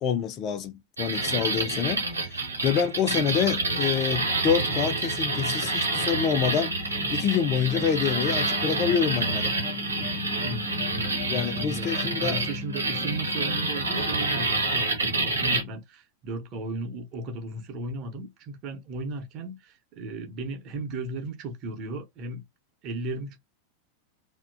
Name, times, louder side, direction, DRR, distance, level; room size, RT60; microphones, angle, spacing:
voice 1, 0.0-6.7 7.1-9.5 11.3-12.4, left 8 dB, 35° left, 0.4 m, -27 dB
sound 1, 1.0-15.6, right 2 dB, 80° right, 0.9 m, -28 dB
sound 2, 5.0-15.1, left 5 dB, 65° left, 0.7 m, -40 dB
voice 2, 10.4-22.4 22.8-23.4, right 2 dB, 40° right, 0.8 m, -36 dB
2.7 x 2.2 x 2.5 m
figure-of-eight pair, 90°, 0 cm